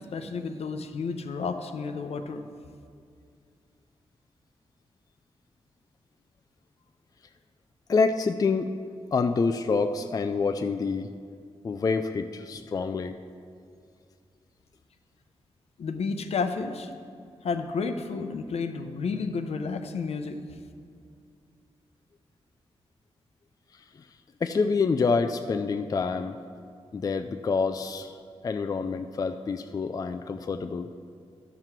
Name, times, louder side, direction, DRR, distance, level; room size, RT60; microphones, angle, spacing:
voice 1, 0.0-2.4 15.8-16.9 17.4-20.4, left 4 dB, 70° left, 7 dB, 0.7 m, -31 dB
voice 2, 7.9-8.7 9.1-11.1 11.6-13.1 24.4-26.4 26.9-28.2 28.4-30.9, left 4 dB, 35° left, 7 dB, 0.3 m, -27 dB
12.0 x 5.8 x 4.6 m, 2.3 s
cardioid pair, 90°, 11 cm